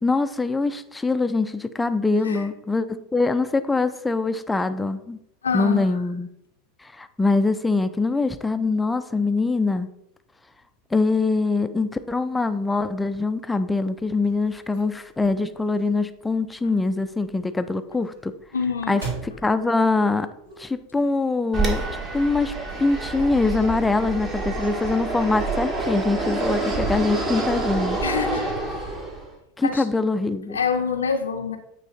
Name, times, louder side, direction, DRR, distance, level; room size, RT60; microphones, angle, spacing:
voice 1, 0.0-5.2 5.5-6.3 6.8-9.9 10.9-18.3 18.9-20.3 20.6-22.5 22.8-28.0 29.6-30.6, left 3 dB, 10° left, 10 dB, 0.4 m, -23 dB
voice 2, 5.4-5.9 18.5-19.0 28.0-28.5 29.6-29.8 30.5-31.6, left 6 dB, 75° left, 4 dB, 0.6 m, -26 dB
sound 1, 14.0-21.0, right 4 dB, 75° right, 2.4 m, -41 dB
Fixed-wing aircraft airplane, 21.5-29.3, right 2 dB, 30° right, 1.6 m, -27 dB
8.8 x 3.2 x 4.1 m, 0.80 s
figure-of-eight pair, 80°, 0 cm